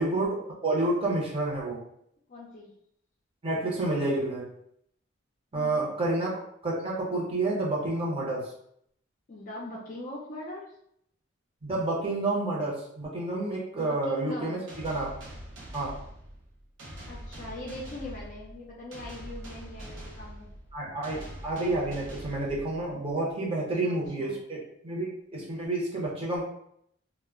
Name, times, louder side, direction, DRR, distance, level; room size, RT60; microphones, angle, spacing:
voice 1, 0.0-1.8 3.4-4.5 5.5-8.4 11.6-15.2 15.7-16.0 20.7-26.5, right 2 dB, 30° right, -5 dB, 0.7 m, -29 dB
voice 2, 2.3-2.7 5.5-5.9 9.3-10.6 13.8-14.6 17.1-20.5 23.5-24.5, left 2 dB, 40° left, -3 dB, 0.4 m, -41 dB
sound 1, 14.7-23.1, equal, 70° right, 0.7 m, -44 dB
2.1 x 2.0 x 3.5 m, 0.72 s
head